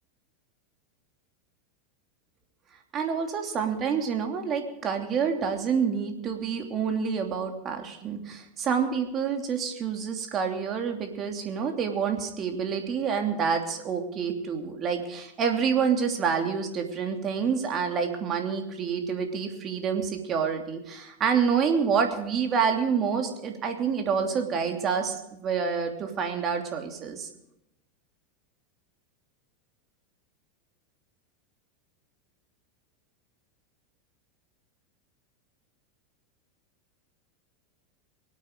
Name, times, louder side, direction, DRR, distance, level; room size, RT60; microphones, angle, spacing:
voice 1, 2.9-27.3, right 6 dB, 35° right, 4 dB, 2.9 m, -28 dB
24.0 x 8.8 x 5.2 m, 0.84 s
hypercardioid pair, 90°, 0 cm